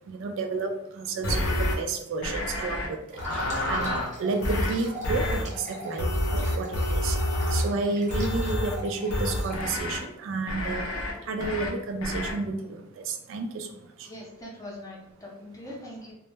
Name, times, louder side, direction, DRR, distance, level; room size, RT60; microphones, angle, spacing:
voice 1, 0.1-3.0 3.3-7.2 7.5-10.9 11.2-13.7 14.0-14.1, right 3 dB, 60° right, 5 dB, 0.3 m, -31 dB
sound 1, 1.2-1.8 2.2-2.9 3.2-4.1 4.4-4.7 5.0-5.4 6.0-7.7 8.1-8.7 9.1-10.0 10.5-11.1 11.4-11.7 12.0-12.3, left 1 dB, 80° left, 0.5 m, -28 dB
sound 2, 3.1-9.7, right 1 dB, 35° right, 0.7 m, -42 dB
voice 2, 14.1-16.1, left 1 dB, 15° left, -4 dB, 0.5 m, -42 dB
2.1 x 2.0 x 3.1 m, 0.83 s
head